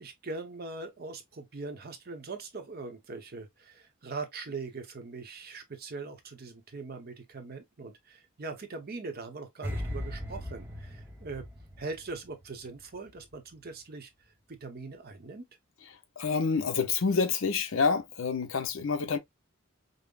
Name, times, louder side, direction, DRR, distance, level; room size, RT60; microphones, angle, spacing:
voice 1, 0.0-11.5 11.8-15.5, right 3 dB, 50° right, 0.8 m, -41 dB
sound 1, 9.6-12.8 13.1-13.3, left 1 dB, 10° right, 0.7 m, -38 dB
voice 2, 16.2-19.2, left 5 dB, 70° left, 0.7 m, -27 dB
5.2 x 2.0 x 2.3 m
head